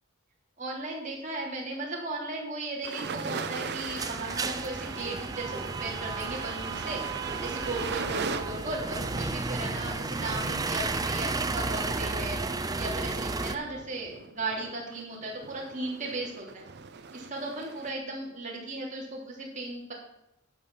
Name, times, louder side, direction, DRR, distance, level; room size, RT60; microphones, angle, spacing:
voice 1, 0.6-16.6 17.1-19.9, right 2 dB, 40° right, -2 dB, 3.2 m, -36 dB
sound 1, 2.8-17.9, right 5 dB, 55° right, 0.7 m, -40 dB
sound 2, 3.0-13.6, right 3 dB, 20° right, 0.6 m, -33 dB
12.0 x 5.5 x 7.1 m, 0.85 s
head